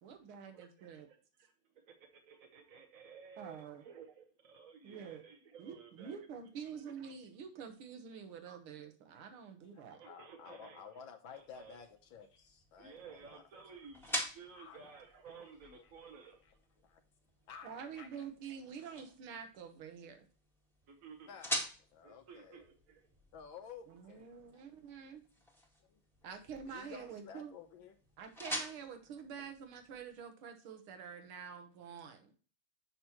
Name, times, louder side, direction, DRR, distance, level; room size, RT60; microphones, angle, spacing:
voice 1, 0.0-1.1 3.4-3.8 4.8-5.2 5.6-10.0 17.6-20.3 23.9-25.2 26.2-27.5 28.2-32.3, right 7 dB, 80° right, 2.0 m, -47 dB
voice 2, 0.5-1.2 2.3-6.2 6.8-6.9 9.9-11.0 11.3-11.8 12.8-16.4 20.9-21.3 22.0-23.1, right 6 dB, 50° right, 1.1 m, -55 dB
voice 3, 9.6-13.4 14.5-15.0 15.7-16.1 16.8-17.0 17.5-18.2 21.3-21.6 21.9-22.6 23.3-24.6 25.8-26.0 26.6-27.9 28.8-28.9, left 7 dB, 70° left, 1.4 m, -53 dB
sound 1, 11.4-30.2, equal, ahead, 1.4 m, -47 dB
7.4 x 6.0 x 2.9 m
omnidirectional pair, 2.4 m